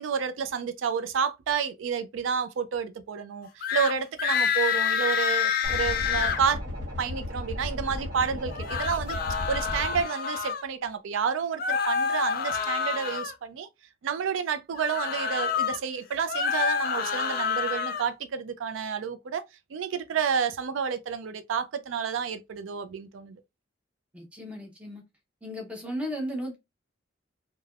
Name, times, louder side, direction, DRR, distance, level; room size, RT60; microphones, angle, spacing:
voice 1, 0.0-6.6 7.0-13.7 14.0-19.5 19.7-23.4, right 6 dB, 85° right, 0.4 m, -30 dB
sound 1, 3.6-3.9 4.2-6.4 8.5-10.6 11.6-13.3 14.7-15.8 16.2-18.1, left 6 dB, 50° left, 0.4 m, -28 dB
sound 2, 5.6-10.0, left 1 dB, 50° right, 1.3 m, -35 dB
voice 2, 24.1-25.0 25.4-26.6, equal, 5° right, 0.7 m, -35 dB
3.2 x 2.2 x 2.3 m
head